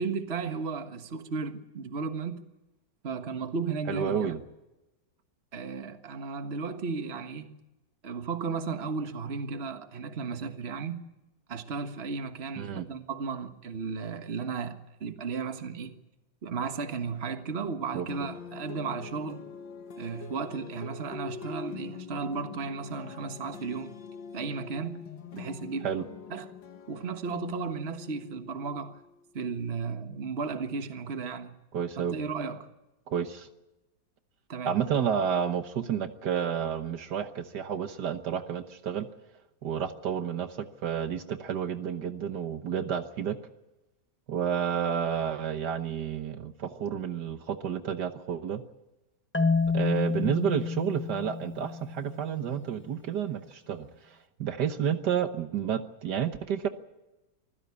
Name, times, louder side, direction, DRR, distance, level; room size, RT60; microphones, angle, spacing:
voice 1, 0.0-2.4 3.0-4.4 5.5-7.6 8.0-11.0 11.5-15.9 16.4-19.4 20.0-24.0 24.3-25.1 25.3-25.9 26.3-26.5 26.9-29.0 29.3-31.5 32.1-32.7 34.5-34.7, right 5 dB, 35° right, 1.6 m, -34 dB
voice 2, 3.9-4.4 12.6-12.9 17.9-18.1 25.8-26.1 31.7-32.2 33.1-33.5 34.6-39.1 39.6-43.4 44.3-48.6 49.7-56.7, right 8 dB, 70° right, 1.6 m, -30 dB
sound 1, 18.1-29.2, left 6 dB, 85° left, 2.1 m, -44 dB
Marimba xylophone, 49.3-52.3, left 4 dB, 15° left, 0.3 m, -29 dB
25.5 x 15.5 x 8.4 m
omnidirectional pair, 1.9 m